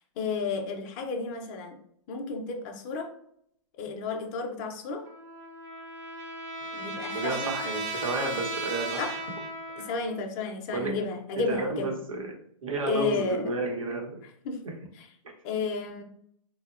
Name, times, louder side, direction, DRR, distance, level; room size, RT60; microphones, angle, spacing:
voice 1, 0.2-1.8 2.1-3.1 3.8-5.0 6.7-7.8 9.0-9.2 9.8-12.0 12.8-13.5 14.4-14.6 14.9-15.1 15.4-16.0, left 4 dB, 35° left, 3 dB, 0.5 m, -32 dB
Trumpet, 5.0-10.2, right 1 dB, 25° right, 0.5 m, -36 dB
voice 2, 6.7-9.1 10.7-10.9 11.5-12.3 12.6-14.2 14.6-14.7, right 2 dB, 90° right, 1 dB, 0.8 m, -31 dB
2.8 x 2.1 x 2.4 m, 0.69 s
hypercardioid pair, 135°, 17 cm